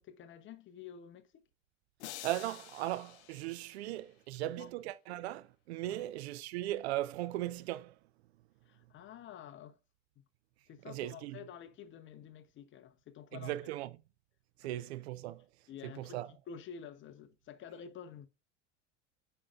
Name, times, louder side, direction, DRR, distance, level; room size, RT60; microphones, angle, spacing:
voice 1, 0.0-1.4 3.8-4.0 4.4-4.7 5.9-6.1 8.7-9.8 10.7-13.7 14.6-14.9 15.7-18.3, left 8 dB, 30° left, 0.8 m, -50 dB
sound 1, 2.0-4.3, left 13 dB, 65° left, 0.7 m, -49 dB
voice 2, 2.2-8.0 10.9-11.4 13.3-13.9 14.6-15.4 15.8-16.3, right 15 dB, 60° right, 0.6 m, -38 dB
8.4 x 5.5 x 2.4 m
figure-of-eight pair, 75°, 37 cm